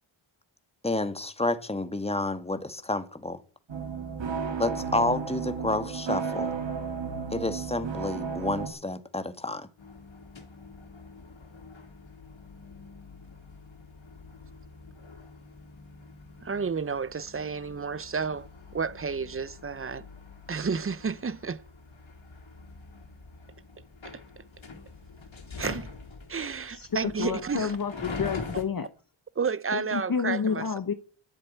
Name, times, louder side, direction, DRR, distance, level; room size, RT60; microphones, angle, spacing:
voice 1, 0.8-3.4 4.6-6.5 7.3-9.7, left 2 dB, 10° left, 1.4 m, -30 dB
sound 1, 3.7-8.7, right 5 dB, 60° right, 2.2 m, -33 dB
sound 2, 9.8-28.6, left 3 dB, 65° left, 3.0 m, -45 dB
voice 2, 16.4-20.0 20.5-21.6 24.0-24.4 25.6-25.9 26.3-27.8 29.4-30.8, right 5 dB, 25° right, 0.6 m, -31 dB
voice 3, 27.2-28.9 29.7-30.9, left 6 dB, 45° left, 1.1 m, -29 dB
11.0 x 10.0 x 9.1 m
wide cardioid pair, 80°, 50 cm